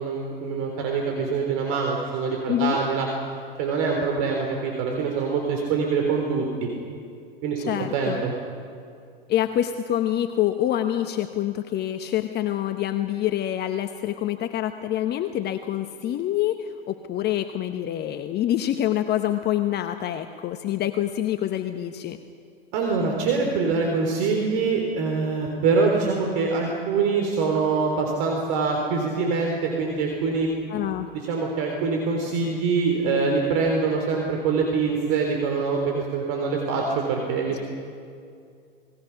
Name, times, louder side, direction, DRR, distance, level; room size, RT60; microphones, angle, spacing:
voice 1, 0.0-3.1 3.6-6.7 7.4-7.6 7.9-8.3 22.7-30.5 31.3-37.6, right 4 dB, 50° right, 1 dB, 3.6 m, -24 dB
voice 2, 7.7-8.2 9.3-22.2 30.7-31.1, left 12 dB, 35° left, 8 dB, 1.1 m, -26 dB
27.5 x 19.5 x 5.9 m, 2.3 s
figure-of-eight pair, 90°, 29 cm